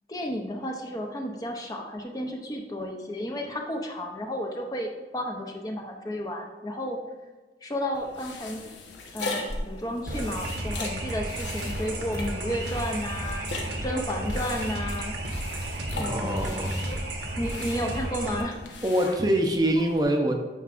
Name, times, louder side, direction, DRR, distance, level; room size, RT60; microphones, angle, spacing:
voice 1, 0.1-7.0 7.6-8.7 9.1-13.5 13.8-15.2 15.5-16.7 17.4-18.6, equal, 20° left, 2 dB, 0.6 m, -32 dB
sound 1, 7.9-20.0, left 2 dB, 80° left, 1.0 m, -39 dB
sound 2, 10.1-18.4, right 1 dB, 75° right, 1.2 m, -33 dB
voice 2, 15.9-17.0 18.8-20.4, right 1 dB, 20° right, 3 dB, 0.6 m, -25 dB
9.1 x 5.8 x 2.5 m, 1.3 s
head